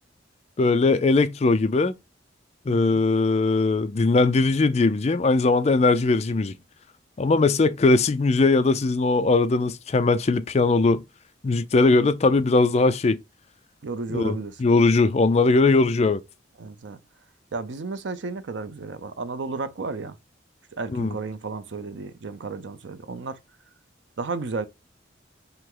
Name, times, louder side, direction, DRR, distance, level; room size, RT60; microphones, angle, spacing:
voice 1, 0.6-1.9 2.7-6.5 7.2-11.0 11.4-13.2 14.1-16.2 20.9-21.1, left 3 dB, 35° left, 0.4 m, -20 dB
voice 2, 2.7-3.0 13.8-14.6 16.6-17.0 17.5-20.2 20.7-23.4 24.2-24.7, right 3 dB, 70° right, 0.5 m, -33 dB
5.6 x 2.0 x 3.8 m
head